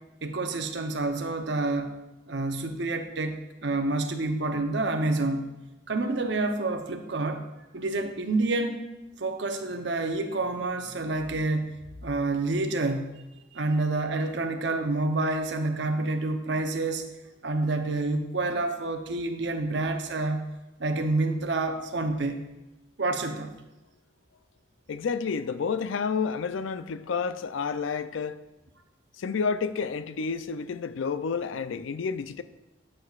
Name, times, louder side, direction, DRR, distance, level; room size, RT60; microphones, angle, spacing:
voice 1, 0.2-1.9 2.3-5.5 5.9-7.4 7.7-8.8 9.2-11.7 12.0-13.2 13.5-17.0 17.4-20.4 20.8-22.4 23.0-23.5, right 2 dB, 65° right, 6 dB, 0.7 m, -28 dB
voice 2, 24.9-28.4 29.2-32.4, left 5 dB, 85° left, 13 dB, 0.4 m, -30 dB
12.5 x 6.5 x 2.4 m, 0.99 s
head